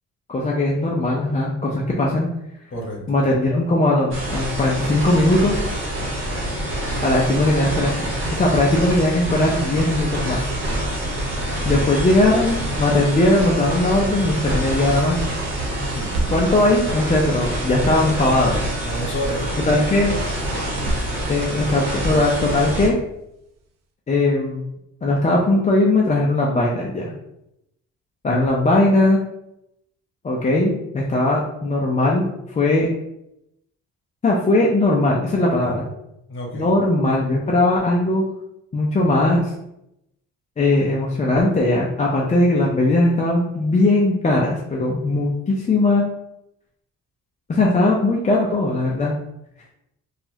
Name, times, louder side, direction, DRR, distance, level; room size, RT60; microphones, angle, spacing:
voice 1, 0.3-2.3 3.1-5.6 7.0-8.1 8.3-10.4 11.6-15.2 16.3-18.6 19.7-20.2 21.3-23.0 24.1-24.6 25.0-27.1 28.2-29.2 30.2-32.3 32.6-32.9 34.2-35.8 36.5-38.2 38.7-39.5 40.6-46.0 47.5-49.1, left 2 dB, 25° left, -3 dB, 0.5 m, -19 dB
sound 1, 4.1-22.9, right 1 dB, 40° right, 1.1 m, -26 dB
sound 2, 15.8-17.3 17.6-18.4 20.5-21.8 22.5-23.3, right 1 dB, 60° right, 0.5 m, -30 dB
voice 2, 18.8-19.6 20.5-20.8 35.6-35.8 36.3-36.7, equal, 40° left, -1 dB, 1.1 m, -30 dB
2.9 x 2.4 x 2.7 m, 0.82 s
cardioid pair, 90°, 30 cm